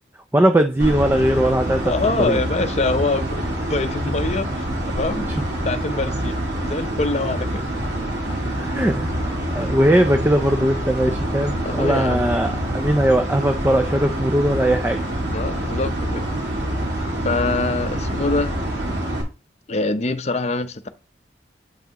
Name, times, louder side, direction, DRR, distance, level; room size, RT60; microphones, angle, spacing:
voice 1, 0.3-2.4 8.6-9.1 9.5-15.1, right 1 dB, 15° right, 0.4 m, -19 dB
sound 1, 0.8-19.2, right 1 dB, 80° right, 2.3 m, -26 dB
voice 2, 1.8-3.4 3.7-5.3 5.6-7.8 11.6-12.2 15.3-16.3 17.2-18.6 19.7-20.9, left 3 dB, 40° left, 0.6 m, -24 dB
8.3 x 5.8 x 2.9 m
head